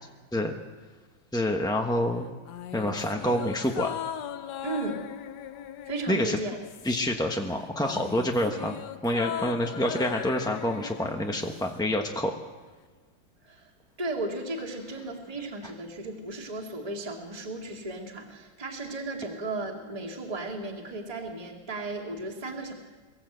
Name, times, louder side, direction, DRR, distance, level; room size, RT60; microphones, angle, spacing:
voice 1, 1.3-2.3 2.7-4.0 6.1-6.4 6.8-8.8 9.0-12.3, left 1 dB, 5° left, 2 dB, 0.6 m, -27 dB
sound 1, 2.5-7.2 7.5-11.8 12.1-12.2, left 10 dB, 65° left, 1.2 m, -39 dB
voice 2, 4.6-5.0 5.9-6.6 13.4-13.7 14.0-22.7, right 2 dB, 20° right, 1 dB, 2.2 m, -35 dB
23.0 x 14.5 x 8.0 m, 1.4 s
omnidirectional pair, 2.1 m